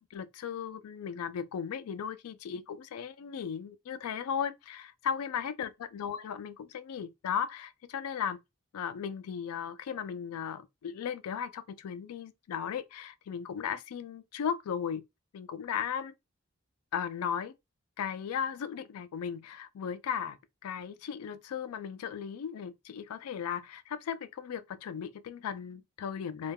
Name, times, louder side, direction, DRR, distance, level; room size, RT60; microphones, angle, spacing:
voice 1, 0.0-8.4 8.7-15.0 15.3-16.1 16.9-17.5 18.0-20.4 20.6-26.5, left 7 dB, 85° left, 0.3 m, -36 dB
2.3 x 2.2 x 3.4 m
head